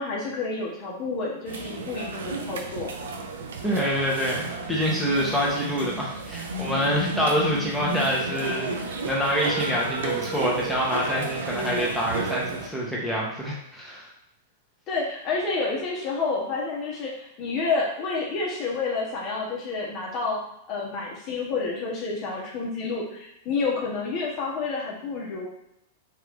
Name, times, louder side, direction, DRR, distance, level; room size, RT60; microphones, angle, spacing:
voice 1, 0.0-2.9 14.9-20.4 20.7-25.5, left 4 dB, 40° left, -3 dB, 1.2 m, -29 dB
sound 1, 1.5-12.7, right 3 dB, 65° right, 0.5 m, -32 dB
voice 2, 3.6-14.1, equal, ahead, -5 dB, 1.1 m, -26 dB
3.6 x 3.2 x 3.4 m, 0.82 s
figure-of-eight pair, 95°, 0 cm